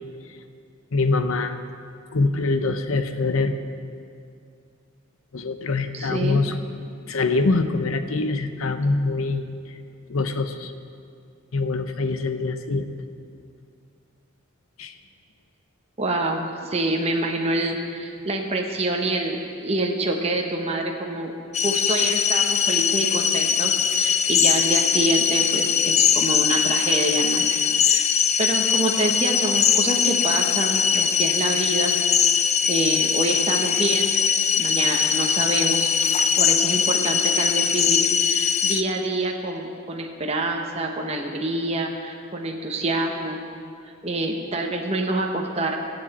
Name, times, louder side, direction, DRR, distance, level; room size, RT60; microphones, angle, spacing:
voice 1, 0.9-1.6 2.1-3.5 5.3-6.5 7.1-9.8 10.1-10.7 11.5-12.9 14.8-14.9, left 3 dB, 80° left, 9 dB, 0.8 m, -24 dB
voice 2, 5.9-6.4 16.0-21.3 21.6-27.5 27.8-28.1 28.4-31.9 32.3-34.2 34.6-35.9 36.4-43.4 43.8-45.8, right 2 dB, 30° right, 1 dB, 1.0 m, -26 dB
sound 1, 21.5-38.8, left 7 dB, 35° left, 0.5 m, -21 dB
23.0 x 7.9 x 4.2 m, 2.4 s
head